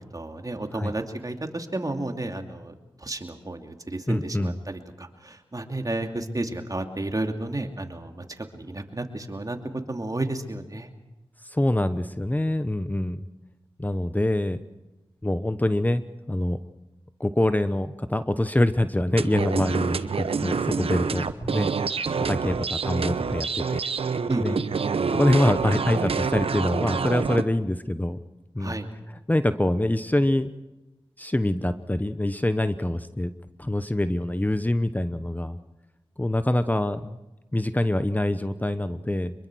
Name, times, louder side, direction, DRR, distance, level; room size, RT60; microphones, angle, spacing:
voice 1, 0.0-10.9 24.3-24.6 28.6-28.9, right 2 dB, 40° right, 5 dB, 2.7 m, -32 dB
voice 2, 4.1-4.5 11.4-13.2 13.8-14.6 15.2-16.0 16.3-16.6 17.2-21.7 22.2-23.8 24.4-24.6 25.1-28.2 28.5-28.8 29.3-30.5 31.2-33.3 33.6-35.6 36.2-37.2 37.5-39.3, left 1 dB, 15° left, 11 dB, 1.0 m, -25 dB
sound 1, 19.1-27.4, right 5 dB, 90° right, 0.9 m, -27 dB
25.0 x 23.0 x 6.3 m, 1.0 s
cardioid pair, 45°, 10 cm